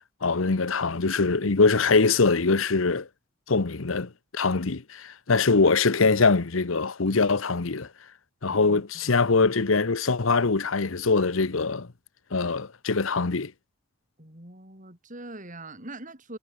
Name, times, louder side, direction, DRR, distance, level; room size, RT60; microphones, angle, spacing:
voice 1, 0.2-3.1 3.5-7.9 8.4-11.9 12.3-13.5, left 4 dB, 75° left, 1.0 m, -23 dB
voice 2, 8.5-9.2 14.2-16.4, right 2 dB, 40° right, 6.9 m, -43 dB
head